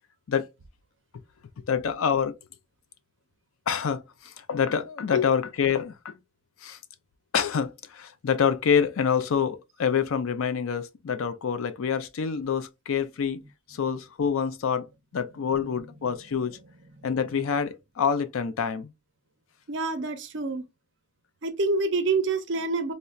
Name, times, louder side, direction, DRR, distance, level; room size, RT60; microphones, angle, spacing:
voice 1, 1.7-2.3 3.7-4.0 4.5-6.1 6.6-6.8 7.3-13.4 13.7-14.8 15.1-16.5 17.0-18.9, left 7 dB, 80° left, 0.4 m, -26 dB
voice 2, 19.7-20.6 21.4-22.9, right 3 dB, 60° right, 0.6 m, -27 dB
4.1 x 2.0 x 2.3 m
head